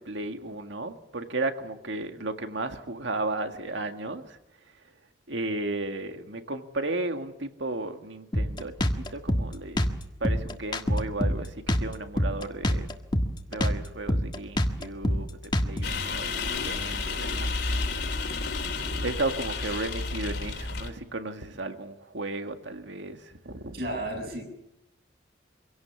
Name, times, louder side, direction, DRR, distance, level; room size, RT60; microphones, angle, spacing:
voice 1, 0.0-4.4 5.3-9.9 10.2-12.9 13.5-15.3 15.6-17.5 19.0-23.8, right 2 dB, 80° right, 6 dB, 2.0 m, -34 dB
Drum kit, 8.3-16.0, equal, 25° left, 1.6 m, -27 dB
sound 1, 15.8-20.9, left 3 dB, 60° left, 3.1 m, -31 dB
voice 2, 23.7-24.5, right 1 dB, 55° right, 3 dB, 6.9 m, -33 dB
25.5 x 17.5 x 7.2 m, 0.88 s
head